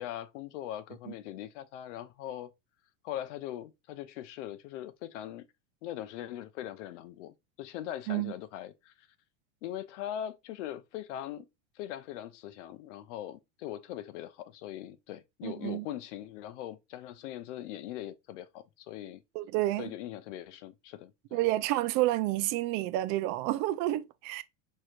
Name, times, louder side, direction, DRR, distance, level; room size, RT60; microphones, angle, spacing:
voice 1, 0.0-2.5 3.0-5.4 5.8-8.9 9.6-11.5 11.8-19.2 19.8-21.4, left 12 dB, 75° left, 0.7 m, -41 dB
voice 2, 15.4-15.8 19.3-19.9 21.3-24.4, right 16 dB, 55° right, 0.5 m, -29 dB
4.6 x 3.2 x 2.4 m
supercardioid pair, 115°, 36 cm